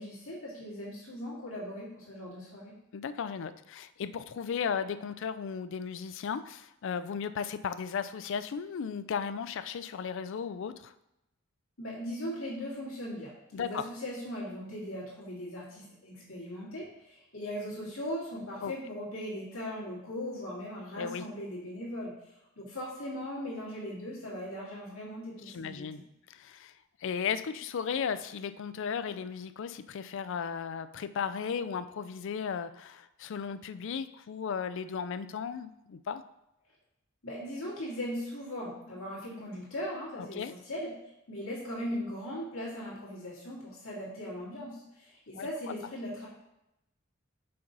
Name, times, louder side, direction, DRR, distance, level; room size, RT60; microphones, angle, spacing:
voice 1, 0.0-2.7 11.8-25.9 37.2-40.9 41.3-46.3, equal, 80° left, -6 dB, 2.0 m, -39 dB
voice 2, 2.9-10.9 13.5-13.8 18.6-18.7 21.0-21.3 25.5-26.0 26.3-26.7 27.0-36.2 40.3-40.5 45.3-45.5, left 6 dB, 65° left, 12 dB, 0.4 m, -35 dB
5.5 x 5.4 x 3.9 m, 0.87 s
head